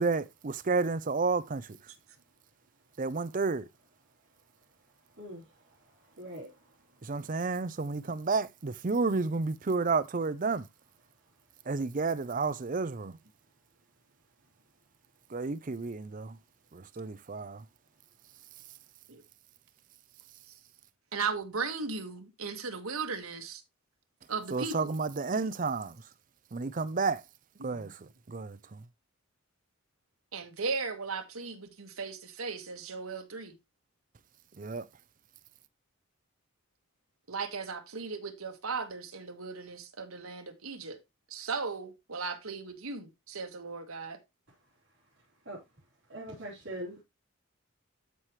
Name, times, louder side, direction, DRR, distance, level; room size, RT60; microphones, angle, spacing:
voice 1, 0.0-1.8 3.0-3.7 7.0-10.7 11.7-13.1 15.3-16.4 16.7-17.6 24.5-26.0 26.5-27.2 27.6-28.8 34.6-34.9, right 4 dB, 40° right, 0.5 m, -31 dB
voice 2, 6.2-6.5 45.5-45.6 46.1-47.0, right 1 dB, 55° right, 4.1 m, -41 dB
voice 3, 21.1-23.6 24.3-24.9 27.7-27.9 30.3-33.5 37.3-41.0 41.3-44.2, right 4 dB, 85° right, 1.5 m, -37 dB
13.0 x 4.9 x 3.0 m
head